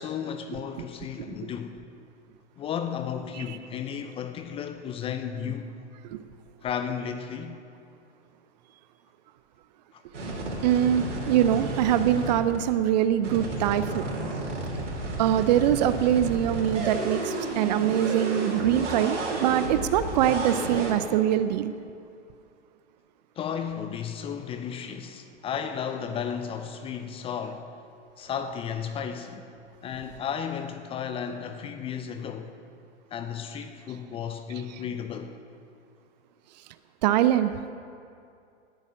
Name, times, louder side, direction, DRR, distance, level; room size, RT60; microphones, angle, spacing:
voice 1, 0.0-1.8 2.6-5.7 6.6-7.6 9.9-10.0 23.4-27.7 28.2-29.4 29.8-32.5 33.1-35.3, left 7 dB, 15° left, 0.6 m, -34 dB
voice 2, 0.5-0.9 1.2-1.5 3.3-3.6 6.0-6.2 10.6-14.1 15.2-21.7 34.5-34.7 37.0-37.5, right 11 dB, 35° right, 0.5 m, -24 dB
sound 1, 10.1-12.6 13.2-20.9, right 2 dB, 75° right, 3.7 m, -32 dB
19.0 x 8.9 x 6.2 m
hypercardioid pair, 115°, 36 cm